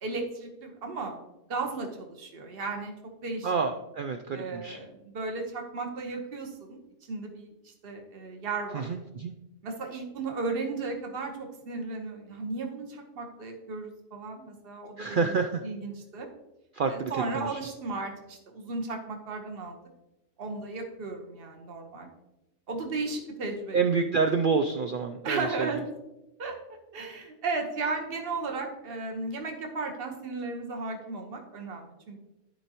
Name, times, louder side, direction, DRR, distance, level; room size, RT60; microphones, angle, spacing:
voice 1, 0.0-1.1 1.5-2.9 3.2-3.5 4.3-8.9 9.6-15.3 15.6-16.3 16.9-19.8 20.4-22.1 22.7-23.8 24.1-24.2 25.2-25.8 26.4-26.6 26.9-32.2, right 3 dB, 45° right, 3 dB, 1.3 m, -35 dB
voice 2, 3.4-4.8 8.7-9.3 15.0-15.6 16.7-17.6 23.7-25.7, right 5 dB, 80° right, 6 dB, 0.4 m, -28 dB
13.0 x 4.6 x 2.9 m, 0.94 s
omnidirectional pair, 1.4 m